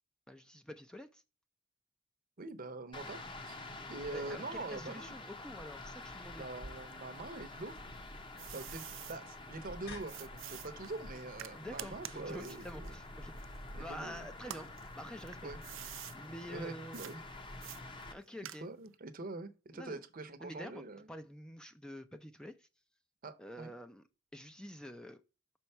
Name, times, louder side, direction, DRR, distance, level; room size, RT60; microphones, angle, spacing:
voice 1, 0.3-1.2 4.1-6.5 11.6-14.7 15.0-15.5 16.1-17.0 18.1-18.7 19.7-20.0 20.4-20.8 21.1-22.7 23.4-24.0 24.3-25.2, equal, 5° left, 0.4 m, -48 dB
voice 2, 2.4-3.6 3.9-5.1 6.4-7.8 8.5-12.9 13.7-14.3 15.4-15.6 16.5-17.2 18.6-21.1 23.2-23.7, right 2 dB, 50° right, 0.8 m, -44 dB
sound 1, 2.9-18.1, left 2 dB, 25° left, 0.9 m, -48 dB
sound 2, 6.6-12.9, left 1 dB, 55° left, 2.4 m, -55 dB
sound 3, 7.7-9.2 10.1-14.0 14.4-16.2 16.9-17.1 17.6-18.9, right 14 dB, 85° right, 0.4 m, -48 dB
6.2 x 4.6 x 5.5 m
head